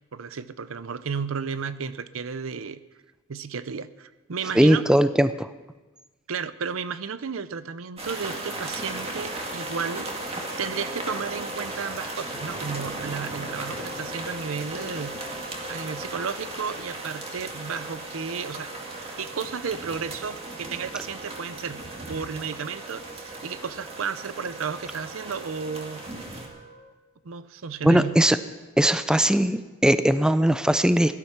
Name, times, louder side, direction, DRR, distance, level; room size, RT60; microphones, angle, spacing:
voice 1, 0.1-2.8 3.3-4.8 6.3-10.1 10.6-15.2 15.7-18.7 19.2-21.8 22.1-26.0 27.2-28.2, right 6 dB, 75° right, 14 dB, 0.6 m, -33 dB
voice 2, 4.5-5.5 27.8-28.4 28.8-31.2, right 1 dB, 5° right, 12 dB, 0.4 m, -20 dB
sound 1, 8.0-26.5, right 2 dB, 30° right, 2.1 m, -36 dB
Wind instrument woodwind instrument, 8.7-26.9, equal, 45° right, 4.0 m, -45 dB
17.0 x 12.0 x 5.9 m, 1.2 s
head